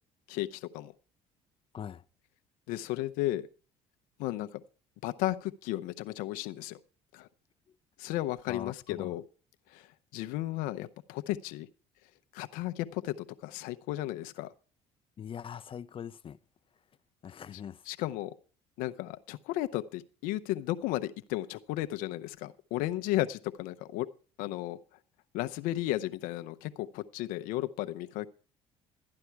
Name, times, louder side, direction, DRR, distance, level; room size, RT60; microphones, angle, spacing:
voice 1, 0.3-0.9 2.7-3.5 4.2-4.6 5.0-6.8 7.1-7.3 8.0-9.2 9.7-11.7 12.3-14.5 17.9-18.3 18.8-24.1 24.4-24.8 25.3-28.3, left 15 dB, 80° left, 0.7 m, -34 dB
voice 2, 1.7-2.0 8.5-9.1 15.2-16.4 17.2-17.8, left 8 dB, 40° left, 0.6 m, -42 dB
13.0 x 9.8 x 4.6 m
supercardioid pair, 80°, 14 cm